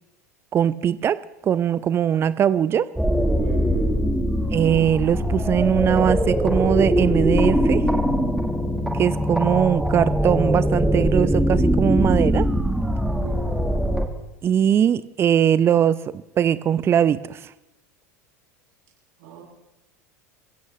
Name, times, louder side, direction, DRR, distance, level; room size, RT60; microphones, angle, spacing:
voice 1, 0.5-1.2 1.4-2.9 4.5-7.8 8.9-12.5 14.4-17.5, right 9 dB, 30° right, 17 dB, 0.5 m, -21 dB
sound 1, 3.0-14.1, equal, 5° right, 1.5 m, -22 dB
voice 2, 3.4-4.0 13.2-13.7 19.2-19.4, right 8 dB, 55° right, -3 dB, 7.2 m, -37 dB
27.0 x 16.0 x 3.2 m, 0.95 s
figure-of-eight pair, 80°, 9 cm